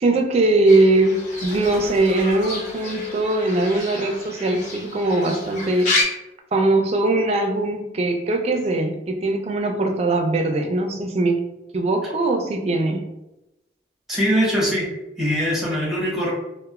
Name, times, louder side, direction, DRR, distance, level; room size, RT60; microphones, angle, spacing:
voice 1, 0.0-5.9 6.5-11.4 11.7-13.1, right 2 dB, 35° right, 4 dB, 0.3 m, -21 dB
Fowl / Bird, 0.7-6.0, left 2 dB, 45° left, 0.7 m, -30 dB
voice 2, 14.1-14.9 15.2-16.3, equal, ahead, -5 dB, 0.7 m, -22 dB
3.0 x 2.0 x 2.3 m, 0.94 s
head